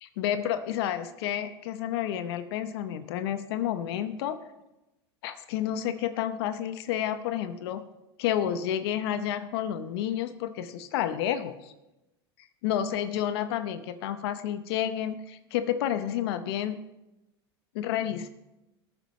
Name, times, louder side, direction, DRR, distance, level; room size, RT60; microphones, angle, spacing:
voice 1, 0.0-4.4 5.2-7.8 8.2-11.7 12.6-16.8 17.7-18.3, left 10 dB, 70° left, 10 dB, 0.8 m, -30 dB
19.5 x 8.9 x 3.1 m, 0.96 s
hypercardioid pair, 95°, 14 cm